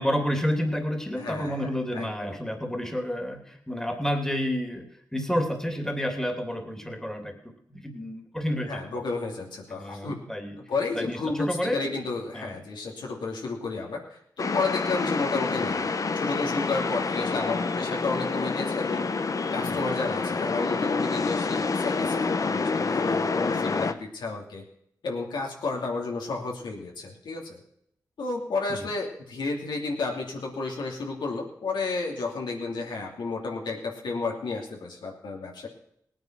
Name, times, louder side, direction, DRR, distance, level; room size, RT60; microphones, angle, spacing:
voice 1, 0.0-8.8 9.7-10.6 10.9-11.9 12.3-12.5 19.6-19.8 23.4-23.8 28.8-28.9, equal, 5° left, 5 dB, 2.8 m, -30 dB
voice 2, 1.2-2.4 8.7-10.2 10.7-15.9 16.1-19.0 19.5-24.7 25.0-27.6 28.2-35.7, left 3 dB, 80° left, 0 dB, 2.9 m, -32 dB
sound 1, 14.4-23.9, left 4 dB, 50° left, 1.0 m, -27 dB
17.5 x 9.4 x 6.1 m, 0.71 s
cardioid pair, 55°, 7 cm